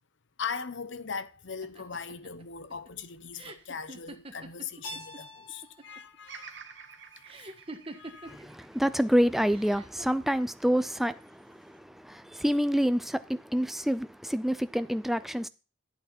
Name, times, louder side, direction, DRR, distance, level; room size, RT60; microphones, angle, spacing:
voice 1, 0.4-6.6 7.9-8.5, left 5 dB, 60° left, 0.8 m, -39 dB
sound 1, 1.6-5.2 5.5-6.2 7.3-8.5 9.5-10.0, right 2 dB, 25° right, 1.5 m, -45 dB
Keyboard (musical), 4.8-7.6, left 1 dB, 40° left, 6.0 m, -47 dB
Bird vocalization bird call bird song, 6.3-10.5 11.0-11.8, right 6 dB, 60° right, 1.3 m, -50 dB
voice 2, 8.3-15.5, equal, ahead, 0.4 m, -28 dB
11.5 x 8.5 x 4.4 m
head